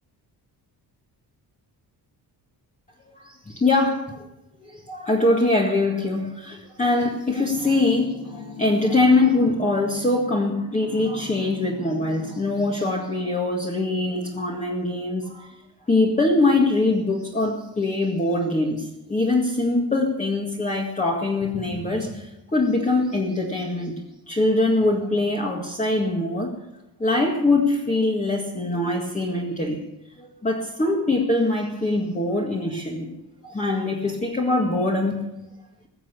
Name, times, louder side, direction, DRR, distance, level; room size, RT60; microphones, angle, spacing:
voice 1, 3.1-4.3 4.6-15.5 15.9-24.0 24.3-26.5 27.0-29.8 30.2-33.1 33.4-35.2, left 2 dB, 20° left, -1 dB, 1.9 m, -23 dB
sound 1, 7.4-12.8, left 3 dB, 80° left, 3.3 m, -40 dB
21.5 x 7.6 x 8.4 m, 0.93 s
wide cardioid pair, 165°, 40 cm